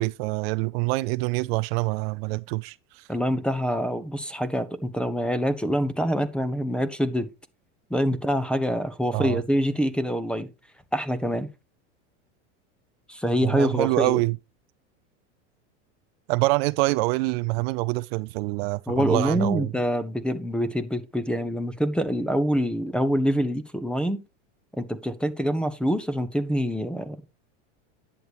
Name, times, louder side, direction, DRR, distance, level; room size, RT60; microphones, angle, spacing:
voice 1, 0.0-3.0 9.1-9.4 13.4-14.4 16.3-19.7, right 23 dB, 55° right, 0.5 m, -25 dB
voice 2, 3.1-7.3 7.9-10.5 10.9-11.5 13.1-14.2 18.9-24.2 24.8-27.2, equal, 5° left, 1.1 m, -25 dB
10.5 x 8.4 x 3.0 m
supercardioid pair, 115°, 36 cm